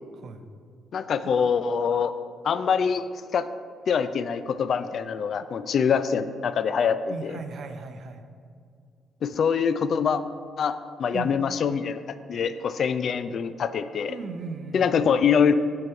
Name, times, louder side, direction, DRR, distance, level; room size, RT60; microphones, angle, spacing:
voice 1, 0.1-0.4 7.1-8.2 11.1-11.3 14.1-15.0, right 4 dB, 60° right, 8 dB, 0.6 m, -37 dB
voice 2, 0.9-2.1 2.4-3.0 3.3-3.5 3.9-7.4 9.2-10.2 10.6-14.2 14.7-15.5, left 6 dB, 60° left, 12 dB, 0.3 m, -24 dB
7.5 x 4.7 x 4.6 m, 2.2 s
cardioid pair, 90°, 0 cm